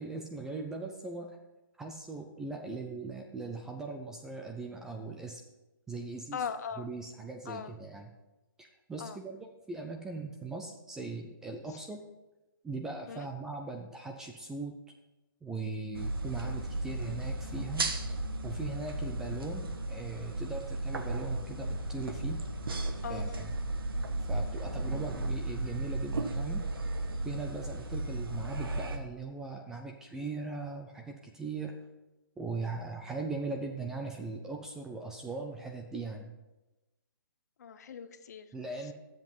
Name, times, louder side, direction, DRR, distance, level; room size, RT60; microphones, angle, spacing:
voice 1, 0.0-1.4 1.8-5.4 5.9-6.5 6.8-8.1 8.6-12.0 12.6-14.7 15.4-17.9 18.4-22.4 23.1-23.6 24.3-26.7 27.2-31.8 32.4-36.3 38.5-38.9, right 3 dB, 5° right, 3 dB, 0.4 m, -39 dB
voice 2, 6.3-6.9 7.5-7.7 9.0-9.2 13.1-13.2 23.0-23.5 37.6-38.5, left 7 dB, 45° left, 11 dB, 0.8 m, -39 dB
sound 1, 15.9-29.0, right 2 dB, 80° right, 1.5 m, -35 dB
11.5 x 7.7 x 5.4 m, 1.0 s
hypercardioid pair, 165°, 12 cm